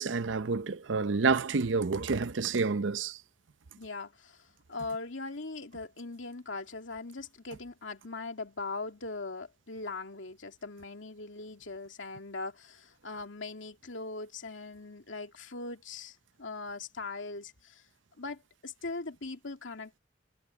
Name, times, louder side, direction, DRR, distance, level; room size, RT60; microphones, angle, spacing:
voice 1, 0.0-3.1, right 4 dB, 80° right, 0.7 m, -29 dB
voice 2, 3.8-17.8 18.2-20.0, left 3 dB, 85° left, 2.5 m, -40 dB
head